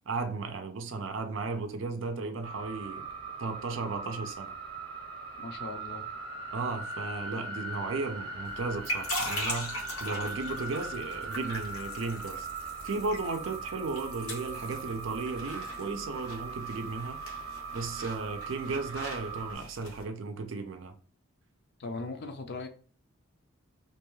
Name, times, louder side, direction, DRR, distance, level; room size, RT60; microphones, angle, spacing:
voice 1, 0.1-3.0 3.4-4.5 6.5-12.5 12.8-17.2 17.7-20.9, right 4 dB, 65° right, 0.5 m, -35 dB
sound 1, 2.4-19.6, right 3 dB, 25° right, 0.7 m, -40 dB
voice 2, 5.4-6.1 21.8-22.7, left 3 dB, 50° left, 0.4 m, -39 dB
sound 2, 8.5-20.0, equal, 90° left, 1.1 m, -40 dB
2.6 x 2.3 x 3.0 m
head